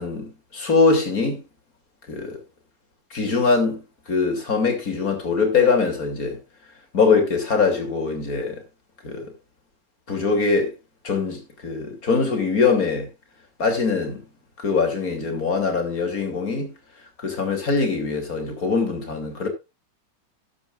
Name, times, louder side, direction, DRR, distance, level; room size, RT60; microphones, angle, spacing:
voice 1, 0.0-1.4 2.1-2.4 3.1-3.8 4.1-6.4 6.9-8.6 9.0-9.3 10.1-10.7 11.0-13.1 13.6-14.2 14.6-16.7 17.2-19.5, left 4 dB, 50° left, 3.3 m, -22 dB
13.5 x 10.0 x 2.4 m
omnidirectional pair, 2.0 m